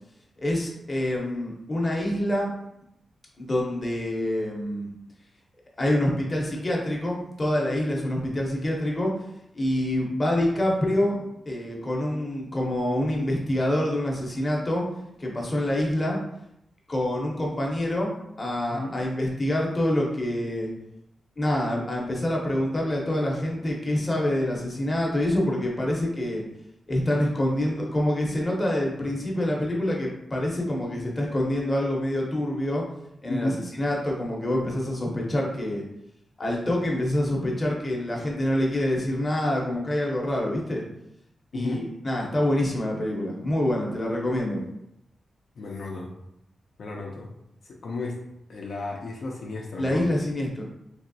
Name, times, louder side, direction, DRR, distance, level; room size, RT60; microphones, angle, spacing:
voice 1, 0.4-2.5 3.4-4.9 5.8-9.1 9.5-11.2 11.5-14.8 15.2-16.2 16.9-20.7 21.4-26.4 26.9-32.8 33.2-33.5 33.8-35.8 36.4-40.8 41.5-44.6 49.8-50.6, left 1 dB, 20° left, -2 dB, 0.7 m, -26 dB
voice 2, 33.3-33.6 41.5-41.9 45.6-46.1 46.8-47.3 47.6-48.2 48.5-50.1, left 2 dB, 60° left, -1 dB, 0.4 m, -33 dB
3.4 x 2.9 x 2.6 m, 0.80 s
wide cardioid pair, 165°, 0 cm